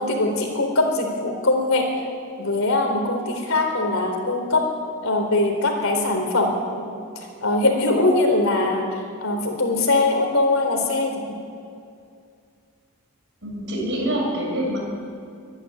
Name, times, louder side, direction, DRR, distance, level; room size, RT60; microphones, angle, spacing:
voice 1, 0.0-1.9 2.4-4.6 5.0-6.9 7.4-8.9 9.2-11.1, left 2 dB, 65° left, 3 dB, 4.0 m, -21 dB
voice 2, 13.4-14.8, right 1 dB, 55° right, -1 dB, 6.6 m, -25 dB
25.0 x 11.5 x 9.9 m, 2.4 s
head